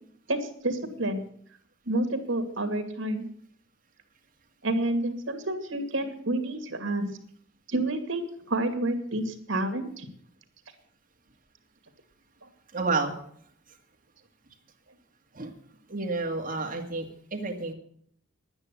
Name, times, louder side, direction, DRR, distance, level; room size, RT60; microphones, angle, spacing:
voice 1, 0.3-1.2 1.8-3.3 4.6-7.1 7.7-10.1, right 1 dB, 80° right, 7 dB, 2.3 m, -29 dB
voice 2, 12.7-13.1 15.3-15.5 15.9-17.7, right 3 dB, 45° right, 2 dB, 2.1 m, -30 dB
11.0 x 9.6 x 8.4 m, 0.63 s
head